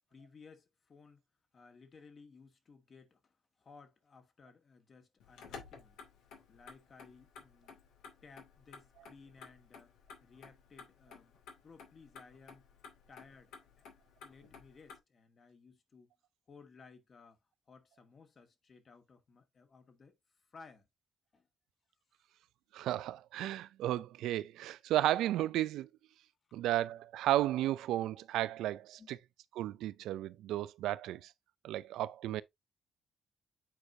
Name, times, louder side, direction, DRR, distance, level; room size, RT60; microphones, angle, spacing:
voice 1, 0.1-1.2 1.5-6.0 6.5-7.8 8.2-9.9 10.2-11.4 11.6-12.7 13.1-13.9 14.2-16.1 16.5-17.4 17.7-20.2 20.5-20.9 21.3-21.5 26.5-26.6 29.0-29.1, left 4 dB, 45° left, 1.9 m, -58 dB
Motor vehicle (road), 5.2-15.0, left 5 dB, 90° left, 2.3 m, -55 dB
voice 2, 22.7-25.9 26.5-29.2 29.6-31.3 31.6-32.4, right 14 dB, 85° right, 0.5 m, -33 dB
8.7 x 4.6 x 2.7 m
cardioid pair, 90°, 0 cm